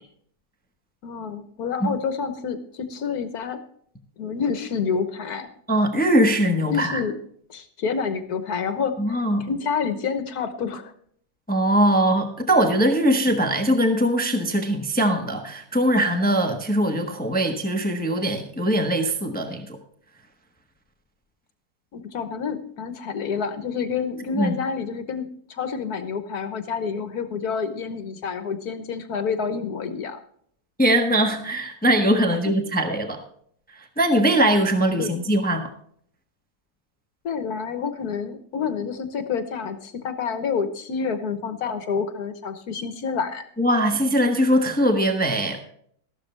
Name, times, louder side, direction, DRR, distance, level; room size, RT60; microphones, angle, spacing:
voice 1, 1.0-3.6 4.2-5.5 6.7-7.2 7.5-10.9 21.9-30.2 35.0-35.2 37.2-43.5, left 6 dB, 70° left, 10 dB, 1.6 m, -28 dB
voice 2, 5.7-7.0 9.0-9.5 11.5-19.8 24.3-24.5 30.8-33.2 33.7-35.7 43.6-45.6, right 1 dB, 5° left, 5 dB, 1.1 m, -21 dB
13.5 x 12.5 x 3.3 m, 0.63 s
omnidirectional pair, 1.7 m